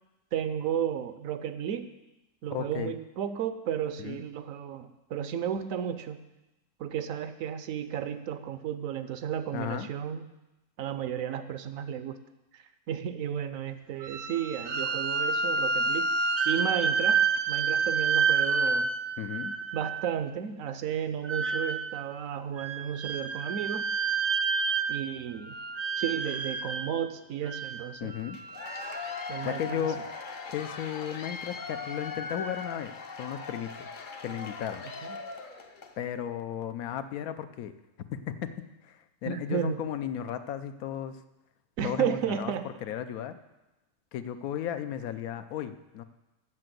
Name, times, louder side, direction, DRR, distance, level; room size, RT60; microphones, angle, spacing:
voice 1, 0.3-1.9 2.4-6.2 6.8-10.3 10.8-12.2 12.5-16.1 16.5-17.2 17.5-18.9 19.7-23.9 24.9-25.6 26.0-28.1 29.3-29.9 35.0-35.2 39.3-39.8 41.8-42.7, right 9 dB, 70° right, 11 dB, 1.0 m, -33 dB
voice 2, 2.5-3.0 4.0-4.2 9.5-9.9 19.2-19.6 28.0-28.4 29.4-30.0 30.5-32.9 33.2-33.9 34.2-34.8 36.0-37.7 38.1-38.5 38.8-41.2 41.8-42.5 42.8-43.4 44.1-46.0, left 10 dB, 75° left, 10 dB, 1.1 m, -35 dB
sound 1, 14.0-20.2 21.2-22.1 22.6-25.2 25.4-26.9 27.4-29.5, right 5 dB, 50° right, 0.5 m, -29 dB
Cheering / Applause / Crowd, 28.3-36.0, left 4 dB, 45° left, 0.7 m, -40 dB
7.8 x 6.5 x 7.6 m, 0.99 s
omnidirectional pair, 1.6 m